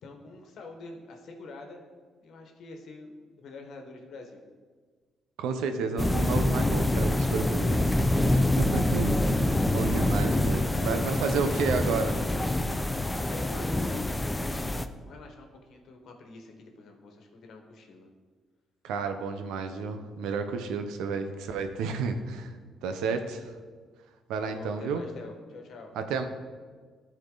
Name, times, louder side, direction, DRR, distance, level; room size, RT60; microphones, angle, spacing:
voice 1, 0.0-1.8 2.2-4.4 10.5-12.8 13.3-14.1 15.0-18.1 24.4-25.9, left 3 dB, 70° left, 3 dB, 1.3 m, -46 dB
voice 2, 5.4-12.2 18.8-22.5 22.8-23.5 24.3-25.0 26.0-26.3, right 5 dB, 85° right, 7 dB, 0.7 m, -31 dB
sound 1, 6.0-14.9, left 1 dB, 15° left, 0.5 m, -26 dB
13.0 x 4.4 x 3.9 m, 1.5 s
supercardioid pair, 75°, 0 cm